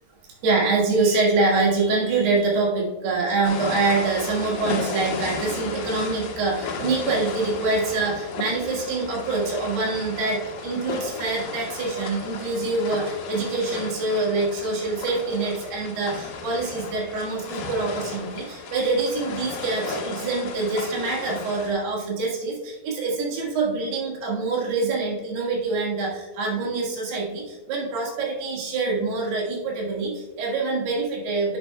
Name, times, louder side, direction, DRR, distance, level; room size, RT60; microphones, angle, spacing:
voice 1, 0.4-31.6, right 3 dB, 75° right, -3 dB, 3.7 m, -25 dB
sound 1, 3.4-21.7, left 4 dB, 75° left, 3.3 m, -34 dB
10.5 x 7.9 x 2.3 m, 1.2 s
omnidirectional pair, 4.8 m